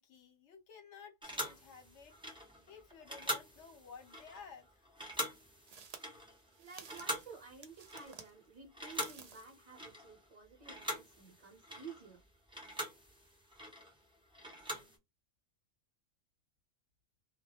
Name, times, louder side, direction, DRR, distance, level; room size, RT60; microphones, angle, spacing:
voice 1, 0.0-2.1 2.7-4.9, left 6 dB, 70° left, 1.0 m, -54 dB
sound 1, 1.2-8.4 8.7-10.3 10.6-15.0, equal, 5° right, 0.4 m, -44 dB
sound 2, 4.4-4.5 5.3-8.3 8.8-9.5, right 6 dB, 85° right, 0.3 m, -54 dB
voice 2, 6.6-12.2, right 5 dB, 35° right, 0.7 m, -53 dB
2.3 x 2.1 x 2.7 m
omnidirectional pair, 1.3 m